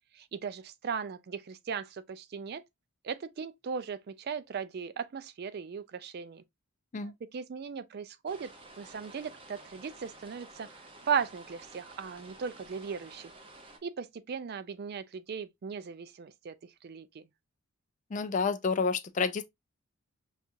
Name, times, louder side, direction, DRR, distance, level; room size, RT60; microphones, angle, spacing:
voice 1, 0.1-2.6 3.0-6.4 7.0-8.5 8.8-10.7 11.0-13.3 13.8-17.2, right 6 dB, 45° right, 0.3 m, -37 dB
sound 1, 8.3-13.8, right 2 dB, 25° right, 0.7 m, -52 dB
voice 2, 18.1-19.4, left 5 dB, 35° left, 0.3 m, -29 dB
5.3 x 2.4 x 2.6 m
head